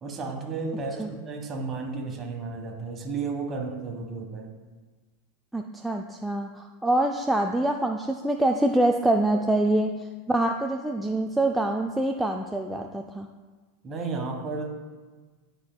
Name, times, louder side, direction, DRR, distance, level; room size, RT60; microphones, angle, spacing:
voice 1, 0.0-4.5 13.8-14.7, right 4 dB, 30° right, 2 dB, 1.4 m, -33 dB
voice 2, 5.5-10.0 10.3-13.3, right 1 dB, 5° right, 2 dB, 0.3 m, -25 dB
11.5 x 4.5 x 2.3 m, 1.4 s
hypercardioid pair, 105°, 0 cm